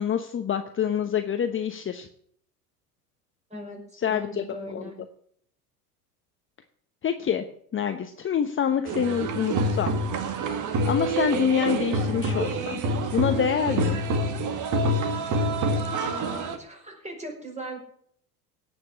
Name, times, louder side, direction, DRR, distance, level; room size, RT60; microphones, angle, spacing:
voice 1, 0.0-2.1 3.9-4.9 7.0-7.4 7.7-9.9 10.8-12.8 13.1-14.0, left 8 dB, 25° left, 7 dB, 1.1 m, -26 dB
voice 2, 3.5-3.8 4.1-5.0 16.0-17.8, right 1 dB, 15° right, 1 dB, 5.7 m, -38 dB
sound 1, 8.8-16.6, right 1 dB, 40° right, 2.1 m, -27 dB
17.5 x 6.3 x 8.6 m, 0.64 s
hypercardioid pair, 80°, 47 cm